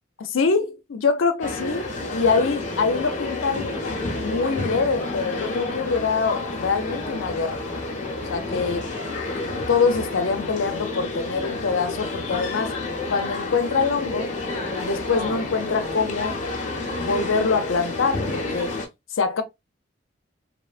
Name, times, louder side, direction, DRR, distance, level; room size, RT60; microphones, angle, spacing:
voice 1, 0.2-1.8 2.1-3.7 4.2-7.6 8.3-8.8 9.7-12.7 13.1-14.4 14.8-16.4 17.0-18.8 19.1-19.4, left 4 dB, 85° left, 0.5 m, -24 dB
sound 1, 1.4-18.9, left 2 dB, 40° left, 0.6 m, -30 dB
3.0 x 2.1 x 2.3 m
head